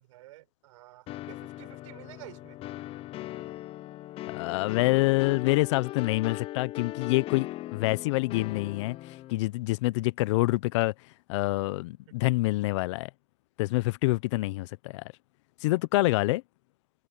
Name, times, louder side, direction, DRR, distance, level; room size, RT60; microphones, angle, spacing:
voice 1, 0.0-2.6, right 17 dB, 60° right, 7.3 m, -50 dB
sound 1, 1.1-9.3, left 15 dB, 30° left, 0.8 m, -39 dB
voice 2, 4.3-7.5 7.7-10.9 11.3-13.1 13.6-15.0 15.6-16.4, left 21 dB, 55° left, 1.1 m, -26 dB
hypercardioid pair, 115°, 18 cm